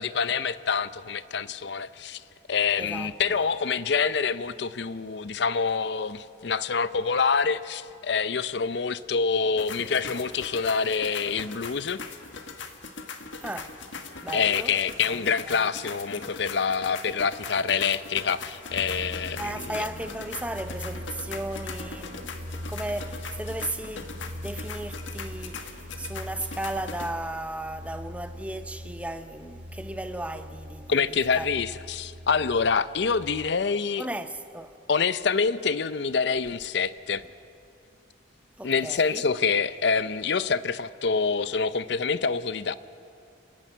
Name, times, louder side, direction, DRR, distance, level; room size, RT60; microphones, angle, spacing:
voice 1, 0.0-2.2 2.5-12.0 14.3-19.9 30.9-34.1 34.9-37.2 38.6-42.7, left 5 dB, 65° left, 0.6 m, -26 dB
voice 2, 2.8-3.1 3.4-3.5 13.4-13.8 14.2-14.7 15.1-15.7 19.4-30.9 31.4-31.5 34.0-34.8 38.6-39.2, right 1 dB, 5° right, 0.7 m, -35 dB
sound 1, 9.6-27.1, left 4 dB, 80° left, 1.5 m, -40 dB
sound 2, 18.7-33.5, equal, 90° right, 1.6 m, -41 dB
30.0 x 10.5 x 9.1 m
head